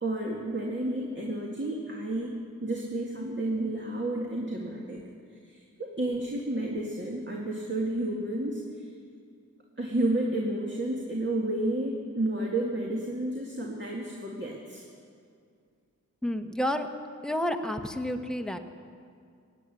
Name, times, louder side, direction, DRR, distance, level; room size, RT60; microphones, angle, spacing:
voice 1, 0.0-2.3 2.6-5.0 5.4-8.9 9.8-14.8, right 1 dB, 35° right, -2 dB, 2.1 m, -31 dB
voice 2, 16.2-16.9 17.2-18.6, left 1 dB, ahead, 5 dB, 1.2 m, -30 dB
17.0 x 9.4 x 8.3 m, 2.2 s
cardioid pair, 45°, 31 cm